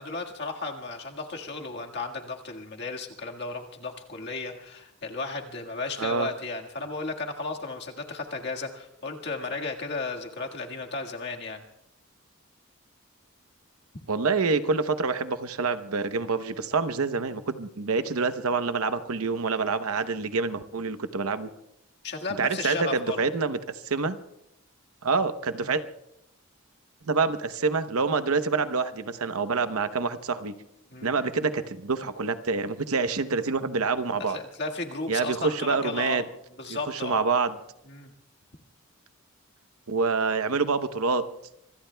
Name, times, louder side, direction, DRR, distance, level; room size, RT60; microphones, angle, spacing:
voice 1, 0.0-11.6 22.0-23.3 25.6-25.7 30.9-31.2 34.3-36.3 36.6-37.3 37.8-38.1, left 3 dB, 50° left, 1 dB, 1.7 m, -34 dB
voice 2, 14.1-21.5 22.4-23.6 23.8-24.2 25.0-25.8 27.0-30.5 31.0-34.4 35.1-36.2 36.7-37.5 39.9-41.2, right 4 dB, 85° right, 10 dB, 0.9 m, -27 dB
25.5 x 25.0 x 2.3 m, 0.83 s
head